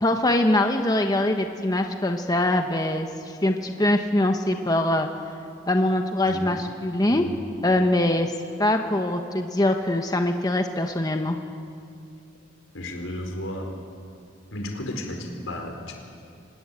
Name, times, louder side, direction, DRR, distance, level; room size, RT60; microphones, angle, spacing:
voice 1, 0.0-3.1 3.4-5.1 5.7-7.2 7.6-8.3 8.6-11.4, left 1 dB, 20° left, 5 dB, 1.1 m, -23 dB
voice 2, 6.2-6.6 7.1-7.4 12.7-13.7 14.5-15.9, left 1 dB, 85° left, 3 dB, 4.4 m, -33 dB
25.0 x 20.0 x 8.9 m, 2.4 s
head